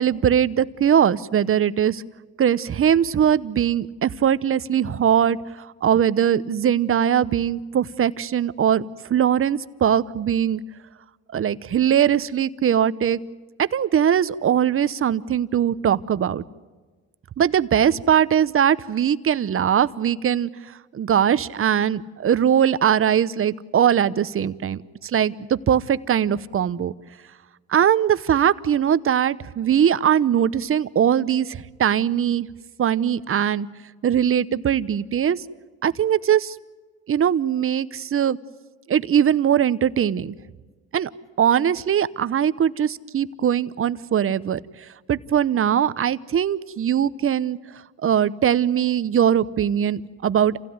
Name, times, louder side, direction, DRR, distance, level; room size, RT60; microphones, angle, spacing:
voice 1, 0.0-2.0 2.4-5.4 5.8-8.8 9.1-10.6 11.3-13.2 13.6-16.4 17.4-20.5 20.9-26.9 27.7-32.5 32.8-33.7 34.0-35.4 35.8-36.6 37.1-38.4 38.9-40.3 40.9-41.1 41.4-44.6 45.1-47.6 48.0-50.6, right 9 dB, 45° right, 16 dB, 0.9 m, -21 dB
28.0 x 16.5 x 9.5 m, 1.4 s
cardioid pair, 90°, 30 cm